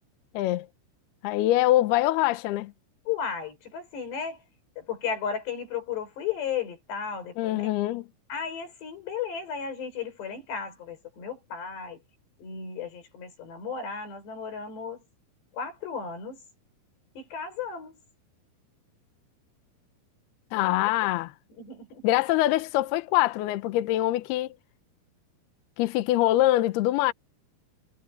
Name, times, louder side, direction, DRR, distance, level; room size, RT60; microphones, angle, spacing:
voice 1, 0.3-0.7 1.2-2.7 7.4-8.1 20.5-21.3 22.0-24.5 25.8-27.1, left 15 dB, 80° left, 2.3 m, -24 dB
voice 2, 3.1-4.4 4.8-7.7 8.3-12.0 12.4-15.0 15.5-16.4 17.2-18.0 20.6-21.1 21.6-22.0, left 7 dB, 55° left, 8.0 m, -34 dB
omnidirectional pair, 5.8 m